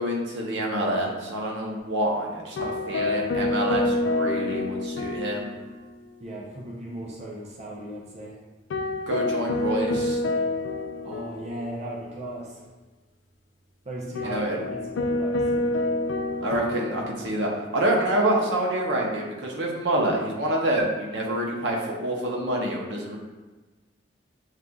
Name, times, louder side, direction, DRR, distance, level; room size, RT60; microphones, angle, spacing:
voice 1, 0.0-5.5 9.1-10.2 14.2-14.6 16.4-23.2, right 1 dB, 70° right, -2 dB, 0.8 m, -27 dB
sound 1, 2.6-6.1 6.4-6.5 8.7-12.0 14.1-17.4, left 2 dB, 80° left, 0.3 m, -28 dB
voice 2, 2.6-3.1 6.2-8.4 11.0-12.7 13.8-14.4 14.7-15.8, right 1 dB, 40° right, -3 dB, 0.5 m, -37 dB
6.6 x 2.5 x 2.3 m, 1.2 s
head